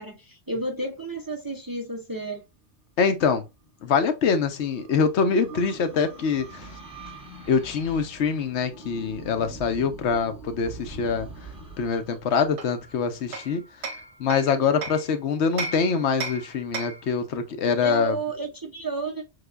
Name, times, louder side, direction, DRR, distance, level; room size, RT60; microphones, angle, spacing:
voice 1, 0.0-2.4 17.8-19.2, right 2 dB, 25° right, 0.5 m, -31 dB
voice 2, 3.0-3.4 3.8-6.7 7.5-11.3 11.8-13.9 14.2-18.2, left 5 dB, 85° left, 1.0 m, -24 dB
sound 1, 3.9-13.5, right 4 dB, 5° right, 1.1 m, -43 dB
Hammer, 12.6-15.1 15.6-17.1, right 4 dB, 80° right, 1.1 m, -35 dB
6.5 x 2.3 x 2.4 m
omnidirectional pair, 1.1 m